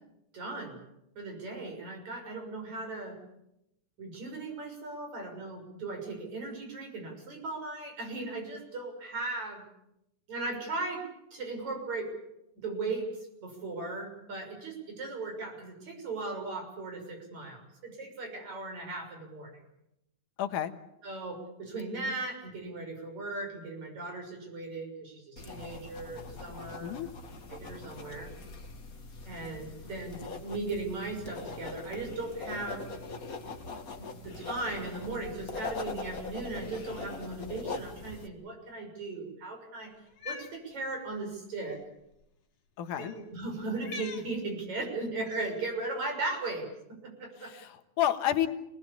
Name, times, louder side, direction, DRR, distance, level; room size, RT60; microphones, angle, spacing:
voice 1, 0.3-0.8 1.2-3.2 4.0-9.6 10.3-11.0 11.3-12.1 12.6-13.1 13.4-19.6 21.0-26.9 27.5-28.3 29.2-32.9 34.0-39.9 40.3-41.8 43.0-47.5, right 2 dB, 65° right, 2 dB, 7.7 m, -37 dB
voice 2, 20.4-20.7 26.8-27.1 42.8-43.1 47.4-48.5, left 11 dB, 80° left, 9 dB, 2.8 m, -30 dB
sound 1, 25.4-38.3, left 3 dB, 30° left, 2.2 m, -42 dB
Cat, 40.1-40.5 41.6-41.8 42.9-43.2 43.8-44.3 45.3-45.6, left 4 dB, 60° left, 3.3 m, -43 dB
28.0 x 19.5 x 8.6 m, 0.86 s
omnidirectional pair, 3.5 m